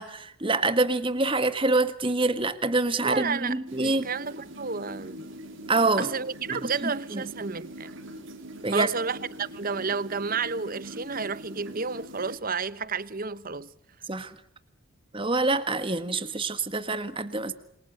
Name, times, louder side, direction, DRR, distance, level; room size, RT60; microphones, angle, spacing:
voice 1, 0.0-4.1 5.7-6.1 6.5-7.2 8.6-8.9 14.1-14.3 15.1-17.5, right 2 dB, 25° right, 1.6 m, -26 dB
voice 2, 3.0-5.3 6.0-7.9 8.7-13.7, right 5 dB, 40° right, 1.0 m, -31 dB
sound 1, 3.7-12.4, equal, 60° right, 4.0 m, -43 dB
28.0 x 24.0 x 8.1 m
head